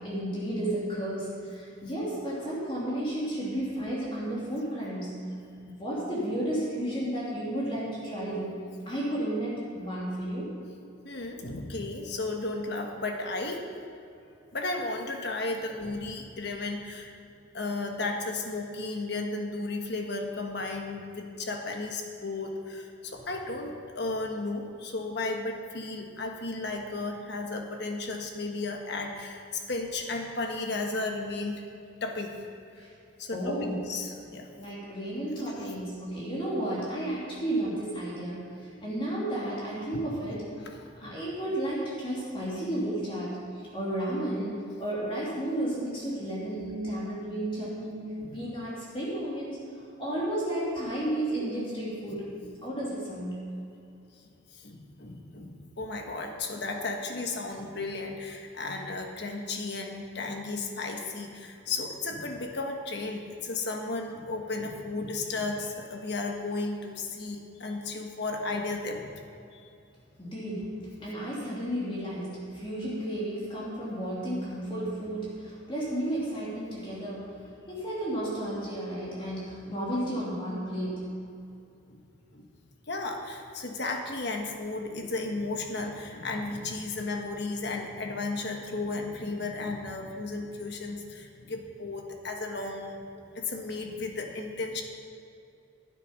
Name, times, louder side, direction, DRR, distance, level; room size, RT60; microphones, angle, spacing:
voice 1, 0.0-5.2 5.7-10.5 32.8-32.9 33.3-33.8 34.6-40.4 41.0-43.4 43.7-49.6 50.0-52.3 52.6-53.5 70.2-81.1, right 1 dB, 25° left, -7 dB, 2.6 m, -33 dB
voice 2, 11.0-13.7 14.5-17.1 17.5-31.6 32.0-32.4 33.2-34.5 40.6-41.2 48.2-48.4 54.5-69.1 69.5-69.6 81.9-82.0 82.3-82.5 82.9-93.0 93.3-94.8, left 3 dB, 55° left, 3 dB, 1.3 m, -34 dB
12.0 x 9.2 x 5.2 m, 2.6 s
head